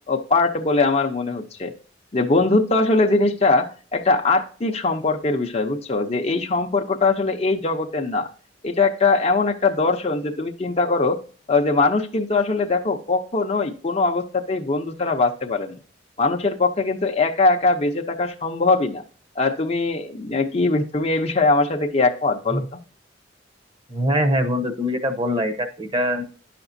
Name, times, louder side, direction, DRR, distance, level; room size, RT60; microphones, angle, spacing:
voice 1, 0.1-1.7 2.1-8.3 8.6-11.2 11.5-15.8 16.2-19.0 19.4-22.8, left 3 dB, 35° left, 3 dB, 0.7 m, -21 dB
voice 2, 23.9-26.2, equal, 25° right, 7 dB, 0.9 m, -23 dB
10.5 x 5.9 x 2.6 m, 0.41 s
head